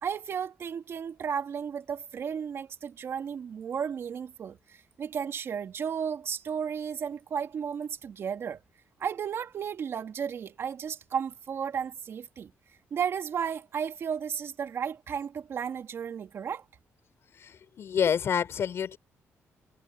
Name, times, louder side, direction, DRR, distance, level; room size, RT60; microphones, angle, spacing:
voice 1, 0.0-4.6 5.0-8.6 9.0-12.5 12.9-16.6, right 7 dB, 55° right, 2.9 m, -33 dB
voice 2, 17.4-19.0, left 8 dB, 55° left, 4.3 m, -28 dB
cardioid pair, 115°, 5 cm